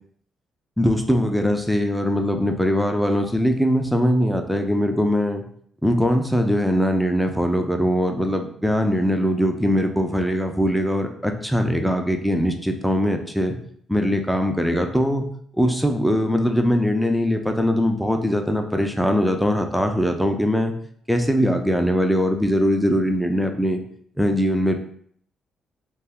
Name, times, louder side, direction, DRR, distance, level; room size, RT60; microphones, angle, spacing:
voice 1, 0.8-5.4 5.8-13.6 13.9-15.3 15.6-20.7 21.1-23.8 24.2-24.7, equal, ahead, 4 dB, 0.4 m, -21 dB
2.4 x 2.2 x 3.4 m, 0.62 s
cardioid pair, 90°, 0 cm